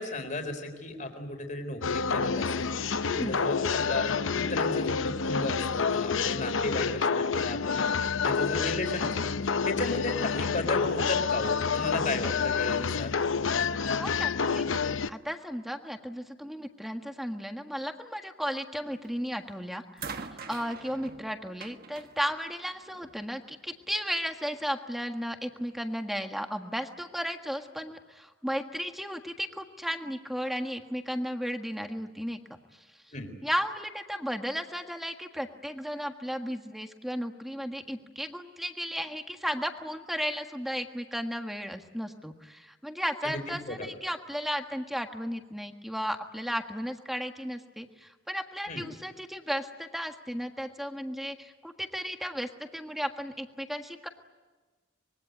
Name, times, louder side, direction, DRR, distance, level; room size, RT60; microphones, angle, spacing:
voice 1, 0.0-7.8 8.2-9.3 9.6-13.1 33.1-33.3 43.3-43.9 48.7-48.8, left 2 dB, 40° left, 5 dB, 4.1 m, -34 dB
sound 1, 1.8-15.1, left 5 dB, 80° left, 0.8 m, -28 dB
voice 2, 3.1-3.4 14.0-14.6 15.1-32.4 33.4-54.1, equal, ahead, 5 dB, 1.6 m, -34 dB
sound 2, 19.0-19.4 20.0-23.2 24.3-24.4, right 5 dB, 50° right, 1.4 m, -44 dB
25.0 x 22.0 x 9.4 m, 1.3 s
head